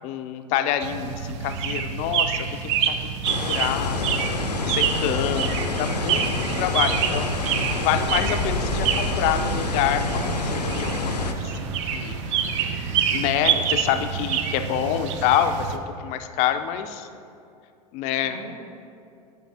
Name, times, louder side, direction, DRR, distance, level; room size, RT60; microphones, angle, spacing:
voice 1, 0.0-4.2 4.7-7.3 7.8-12.2 13.1-17.1 17.9-18.4, left 10 dB, 35° left, 8 dB, 0.4 m, -27 dB
sound 1, 0.8-15.8, right 7 dB, 50° right, 0.5 m, -27 dB
sound 2, 3.2-11.3, left 3 dB, 85° left, 0.6 m, -28 dB
sound 3, 4.1-15.0, equal, 20° right, 1.1 m, -37 dB
voice 2, 12.3-12.8 14.5-15.0 18.2-18.7, right 1 dB, 80° right, -1 dB, 1.4 m, -42 dB
11.0 x 5.7 x 2.7 m, 2.5 s
figure-of-eight pair, 90°, 20 cm